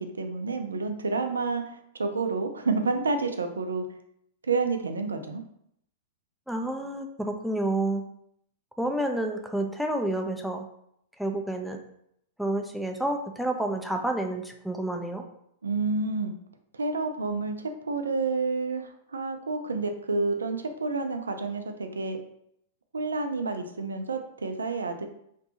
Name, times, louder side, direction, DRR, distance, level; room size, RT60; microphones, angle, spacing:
voice 1, 0.0-3.8 4.4-5.4 15.6-16.3 16.7-17.6 17.9-22.2 22.9-25.0, right 3 dB, 85° right, 6 dB, 0.3 m, -29 dB
voice 2, 6.5-8.0 8.8-10.7 11.2-11.8 12.4-15.2, right 1 dB, ahead, 3 dB, 0.4 m, -29 dB
2.6 x 2.2 x 2.7 m, 0.72 s
hypercardioid pair, 105°, 0 cm